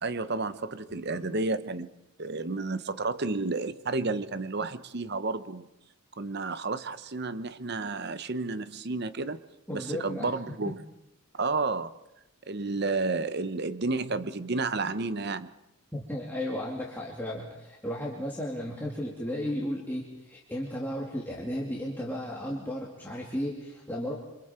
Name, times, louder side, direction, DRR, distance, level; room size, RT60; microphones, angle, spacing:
voice 1, 0.0-1.9 2.2-5.7 6.2-9.4 9.7-10.8 11.3-11.9 12.5-15.5, right 3 dB, 50° right, 13 dB, 0.9 m, -31 dB
voice 2, 9.7-10.3 15.9-24.1, left 1 dB, 10° left, -4 dB, 2.6 m, -34 dB
28.5 x 26.0 x 4.5 m, 0.91 s
head